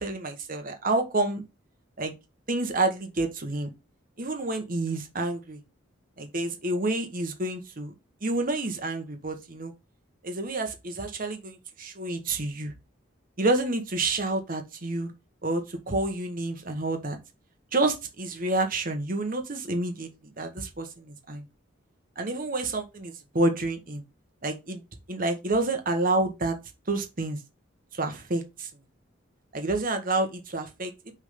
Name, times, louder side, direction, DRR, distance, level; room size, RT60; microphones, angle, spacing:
voice 1, 0.0-1.4 2.0-2.1 2.5-3.7 4.2-5.6 6.2-7.9 8.2-9.7 10.2-12.7 13.4-15.1 15.4-17.2 17.7-20.1 20.4-21.5 22.2-24.0 24.4-24.8 25.1-26.6 26.9-27.4 27.9-28.7 29.5-31.1, right 2 dB, 45° right, 1.2 m, -29 dB
6.5 x 3.6 x 5.1 m
head